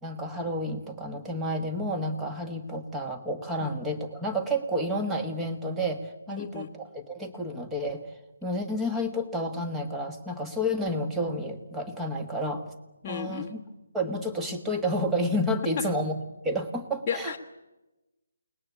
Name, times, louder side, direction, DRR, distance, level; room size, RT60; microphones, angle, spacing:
voice 1, 0.0-8.0 8.4-12.6 13.1-13.6 13.9-16.2 16.4-17.3, equal, 5° right, 4 dB, 1.5 m, -30 dB
voice 2, 6.3-6.7 13.0-13.5 15.8-15.9 17.1-17.4, left 8 dB, 10° left, -8 dB, 1.3 m, -33 dB
29.0 x 20.0 x 8.5 m, 1.1 s
hypercardioid pair, 175°, 0 cm